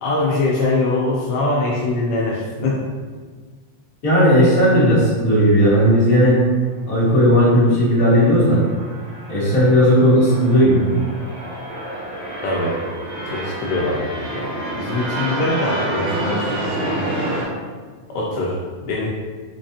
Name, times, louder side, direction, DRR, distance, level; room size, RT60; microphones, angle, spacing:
voice 1, 0.0-2.8 12.4-12.7 13.3-17.0 18.1-19.1, left 2 dB, 85° left, -4 dB, 1.3 m, -23 dB
voice 2, 4.0-6.4 6.9-8.6 9.3-10.9, equal, 35° left, -9 dB, 1.6 m, -15 dB
sound 1, 7.5-17.4, right 1 dB, 55° right, 2.1 m, -28 dB
5.4 x 3.3 x 2.7 m, 1.5 s
omnidirectional pair, 3.4 m